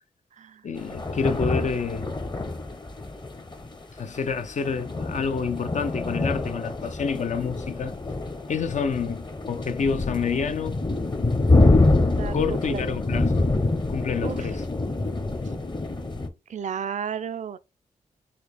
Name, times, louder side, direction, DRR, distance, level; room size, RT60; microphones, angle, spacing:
voice 1, 0.6-2.1 4.0-7.9 8.5-10.8 12.3-13.5 13.9-14.6, left 5 dB, 50° left, 0.5 m, -28 dB
sound 1, 0.8-16.3, left 2 dB, 30° left, 0.9 m, -26 dB
voice 2, 12.1-12.9 14.2-14.5 16.5-17.6, right 7 dB, 55° right, 0.4 m, -33 dB
4.2 x 2.3 x 3.3 m
supercardioid pair, 45°, 15 cm